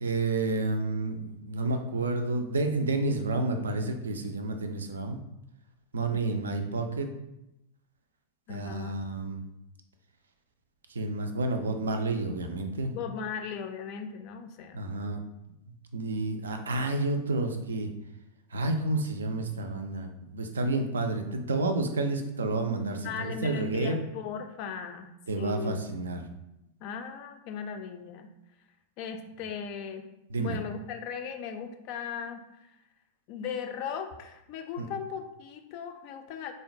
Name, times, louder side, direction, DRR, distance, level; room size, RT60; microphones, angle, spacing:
voice 1, 0.0-5.2 5.9-7.1 8.5-9.4 10.9-13.0 14.7-15.2 15.9-17.9 18.5-24.0 25.3-26.3 30.3-30.6 34.8-34.9, right 2 dB, 70° right, 6 dB, 0.3 m, -30 dB
voice 2, 6.1-6.5 8.5-9.0 12.9-14.8 23.0-25.9 26.2-26.3 26.8-28.3 29.0-30.1 30.4-32.7 33.3-36.5, left 6 dB, 45° left, 5 dB, 0.3 m, -38 dB
3.7 x 2.1 x 2.5 m, 0.90 s
figure-of-eight pair, 90°, 0 cm